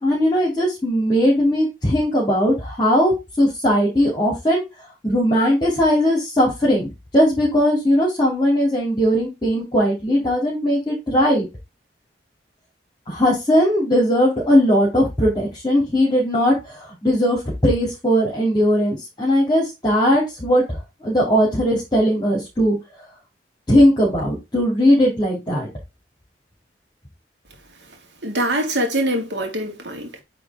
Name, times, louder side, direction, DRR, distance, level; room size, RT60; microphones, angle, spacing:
voice 1, 0.0-4.6 5.0-11.4 13.1-22.8 23.7-25.7, equal, 25° left, 3.1 m, -19 dB
voice 2, 28.2-30.2, right 1 dB, 80° right, 2.2 m, -23 dB
9.2 x 3.7 x 3.6 m
head